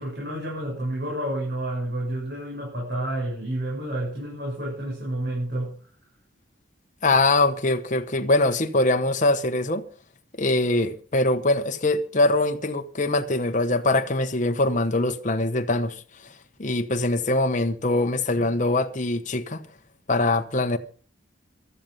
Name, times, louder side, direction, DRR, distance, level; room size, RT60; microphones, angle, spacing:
voice 1, 0.0-5.8, right 1 dB, 55° right, 7.3 m, -30 dB
voice 2, 7.0-9.9 10.4-19.6 20.1-20.8, left 2 dB, 40° left, 1.0 m, -23 dB
15.0 x 12.5 x 5.3 m
head